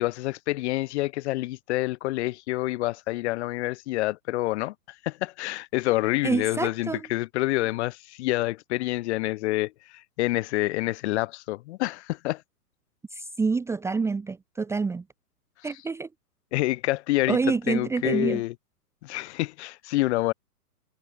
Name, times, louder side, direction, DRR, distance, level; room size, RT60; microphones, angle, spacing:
voice 1, 0.0-4.7 5.0-12.4 16.5-17.4 17.7-18.5 19.0-20.3, left 18 dB, 45° left, 4.0 m, -27 dB
voice 2, 6.2-7.1 13.1-15.0 15.6-16.1 17.3-18.4, right 4 dB, 5° right, 1.1 m, -27 dB
hypercardioid pair, 130°, 47 cm